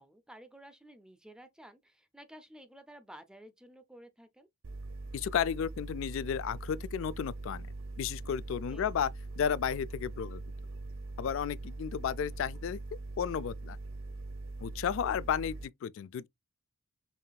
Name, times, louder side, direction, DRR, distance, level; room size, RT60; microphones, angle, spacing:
voice 1, 0.0-4.5 8.7-8.9, right 1 dB, 5° right, 0.4 m, -53 dB
sound 1, 4.6-15.6, right 2 dB, 75° right, 0.8 m, -42 dB
voice 2, 5.1-7.7 8.0-9.1 9.4-10.4 11.2-12.8 13.2-13.8 14.6-16.3, left 8 dB, 65° left, 0.3 m, -33 dB
5.6 x 3.3 x 2.2 m
head